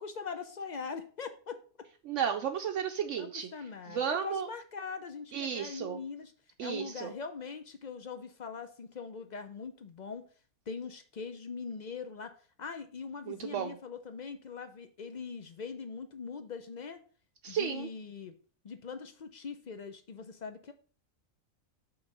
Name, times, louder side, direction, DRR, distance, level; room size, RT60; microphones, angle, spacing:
voice 1, 0.0-1.6 3.2-6.3 6.6-10.3 10.7-12.3 12.6-17.0 17.5-18.3 18.6-20.7, left 5 dB, 50° left, 9 dB, 0.5 m, -42 dB
voice 2, 2.1-3.5 3.9-4.5 5.3-6.0 6.6-7.1 13.3-13.7 17.4-17.9, right 8 dB, 70° right, 5 dB, 0.9 m, -33 dB
5.9 x 3.9 x 5.2 m, 0.41 s
omnidirectional pair, 1.4 m